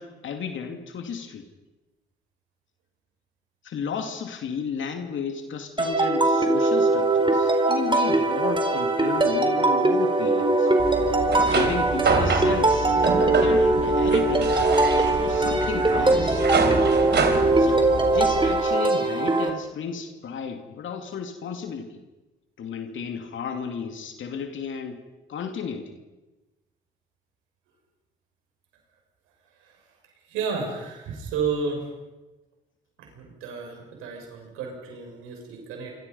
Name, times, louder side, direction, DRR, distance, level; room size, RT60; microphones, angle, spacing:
voice 1, 0.0-1.5 3.6-10.7 11.4-14.7 15.2-16.5 17.6-22.0 22.6-25.0 25.3-26.0, left 6 dB, 65° left, 5 dB, 2.5 m, -34 dB
sound 1, 5.8-19.5, right 2 dB, 25° right, 4.4 m, -21 dB
sound 2, 10.8-18.5, right 4 dB, 55° right, 3.9 m, -27 dB
voice 2, 30.3-31.8 33.0-36.0, right 5 dB, 90° right, 2 dB, 6.6 m, -32 dB
26.5 x 26.0 x 5.6 m, 1.1 s
supercardioid pair, 60°, 21 cm